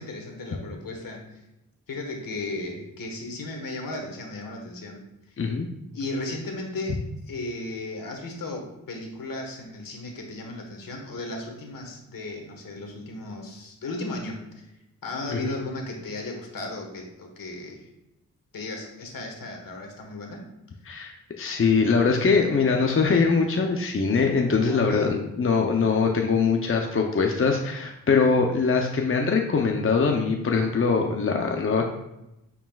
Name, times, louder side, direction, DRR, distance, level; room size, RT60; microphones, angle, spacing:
voice 1, 0.0-1.4 1.9-5.4 5.9-7.0 7.3-14.7 15.0-17.9 18.5-20.4 24.7-25.1, left 2 dB, 70° left, 2 dB, 1.7 m, -35 dB
voice 2, 5.4-5.7 15.3-15.5 20.9-31.9, left 5 dB, 40° left, 2 dB, 0.8 m, -22 dB
8.9 x 4.7 x 2.5 m, 0.90 s
cardioid pair, 50°, 34 cm